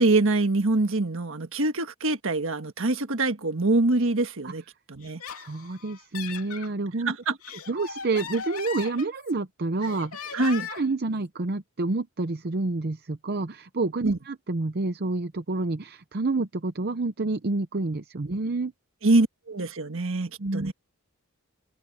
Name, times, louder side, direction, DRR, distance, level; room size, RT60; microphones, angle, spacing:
voice 1, 0.0-5.2 7.0-7.4 10.3-10.7 14.0-14.2 19.0-20.7, right 2 dB, 60° right, 1.5 m, -24 dB
Laughter, 5.0-6.7 7.2-9.4 9.8-11.0, left 7 dB, 75° left, 2.9 m, -39 dB
voice 2, 5.4-7.1 7.7-10.4 10.7-18.7 20.4-20.7, right 3 dB, 45° right, 0.7 m, -29 dB
head